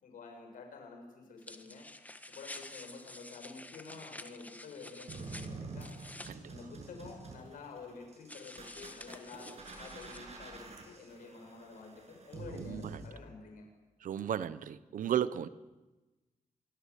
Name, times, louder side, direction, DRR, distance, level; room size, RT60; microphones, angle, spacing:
voice 1, 0.0-1.9 2.3-5.9 6.5-13.7, left 4 dB, 85° left, 7.2 m, -49 dB
sound 1, 1.4-6.3 8.3-10.2, left 1 dB, 10° left, 1.7 m, -49 dB
sound 2, 5.1-13.1, right 3 dB, 50° right, 7.7 m, -47 dB
voice 2, 12.5-13.0 14.0-15.5, right 10 dB, 80° right, 1.0 m, -34 dB
26.5 x 22.5 x 8.5 m
cardioid pair, 115°, 14 cm